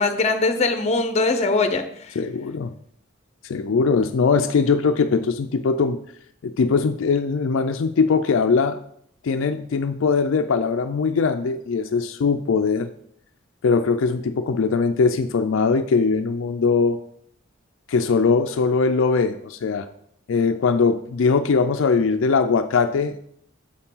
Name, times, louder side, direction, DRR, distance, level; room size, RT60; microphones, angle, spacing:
voice 1, 0.0-2.2, left 3 dB, 30° left, 8 dB, 0.7 m, -21 dB
voice 2, 2.2-2.7 3.4-6.0 6.4-8.8 9.2-12.9 13.6-17.0 17.9-19.9 20.3-23.2, left 5 dB, 70° left, 8 dB, 0.4 m, -21 dB
7.0 x 4.5 x 5.5 m, 0.68 s
head